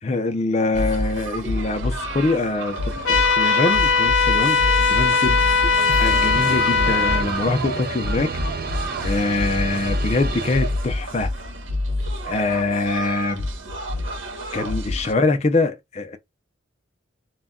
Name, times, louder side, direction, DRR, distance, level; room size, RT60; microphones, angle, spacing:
voice 1, 0.0-2.8 3.1-5.5 6.0-8.6 9.0-11.3 12.3-13.5 14.5-16.2, left 3 dB, 35° left, 0.4 m, -24 dB
sound 1, 0.7-15.1, left 1 dB, 75° right, 0.9 m, -28 dB
sound 2, 1.7-11.2, right 4 dB, 45° right, 0.3 m, -33 dB
sound 3, 3.1-7.2, left 4 dB, 80° left, 0.6 m, -19 dB
2.2 x 2.2 x 3.6 m
head